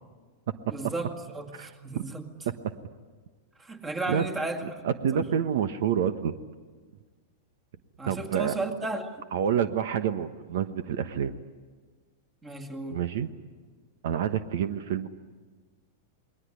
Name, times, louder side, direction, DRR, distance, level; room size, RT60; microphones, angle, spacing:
voice 1, 0.7-2.3 3.6-4.8 5.1-5.3 8.0-9.3 12.4-13.0, right 2 dB, 15° right, 4 dB, 2.1 m, -34 dB
voice 2, 4.8-6.3 8.1-8.5 9.3-11.3 12.9-13.3 14.0-15.1, right 8 dB, 65° right, 11 dB, 1.3 m, -27 dB
28.5 x 21.0 x 9.8 m, 1.5 s
supercardioid pair, 155°, 0 cm